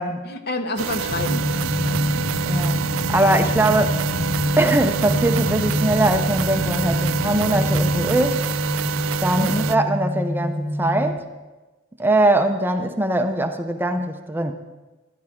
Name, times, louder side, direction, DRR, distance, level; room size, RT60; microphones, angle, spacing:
voice 1, 0.2-2.3 9.4-9.7, left 2 dB, 55° left, 8 dB, 1.0 m, -29 dB
sound 1, 0.8-9.8, right 8 dB, 80° right, 0.4 m, -28 dB
sound 2, 1.1-11.1, equal, 85° left, 2.0 m, -27 dB
sound 3, 1.1-8.3, left 1 dB, 30° left, 1.3 m, -28 dB
voice 2, 2.4-4.0 4.6-8.5 9.2-11.2 12.0-14.5, right 1 dB, 10° right, 6 dB, 0.6 m, -21 dB
15.0 x 12.5 x 3.7 m, 1.2 s
head